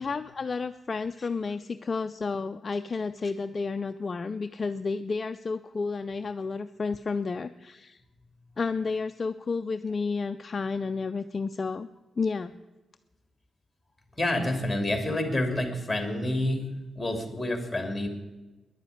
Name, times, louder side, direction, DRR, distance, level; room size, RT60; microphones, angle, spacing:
voice 1, 0.0-8.0 8.6-11.9 12.2-12.6, left 4 dB, 35° left, 9 dB, 0.4 m, -31 dB
voice 2, 14.1-16.7 16.9-18.1, left 1 dB, 5° left, 5 dB, 2.7 m, -28 dB
13.0 x 10.5 x 9.3 m, 1.1 s
wide cardioid pair, 150°, 0 cm